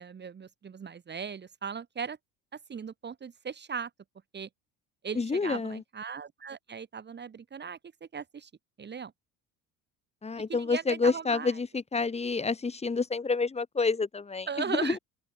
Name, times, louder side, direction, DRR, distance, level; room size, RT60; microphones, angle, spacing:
voice 1, 0.0-2.2 2.7-3.9 4.3-4.5 5.0-7.8 8.1-8.5 8.8-9.1 10.5-11.6 14.5-15.0, right 6 dB, 30° right, 1.0 m, -38 dB
voice 2, 5.2-5.8 10.2-14.9, left 4 dB, 15° left, 1.0 m, -29 dB
supercardioid pair, 80°, 37 cm